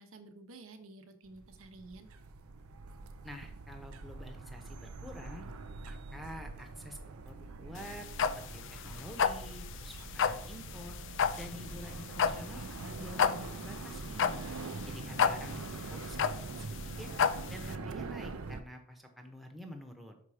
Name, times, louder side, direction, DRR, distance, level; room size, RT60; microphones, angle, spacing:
voice 1, 0.0-2.1 14.6-15.0, right 2 dB, 70° right, 8 dB, 0.9 m, -52 dB
sound 1, 1.3-18.6, right 3 dB, 85° right, 0.5 m, -44 dB
voice 2, 3.2-5.4 5.9-7.0 7.2-11.0 11.4-14.4 14.9-17.1 17.5-20.2, equal, ahead, 4 dB, 0.8 m, -48 dB
sound 2, 7.8-17.7, left 7 dB, 60° left, 0.4 m, -31 dB
5.8 x 4.8 x 4.9 m, 0.68 s
head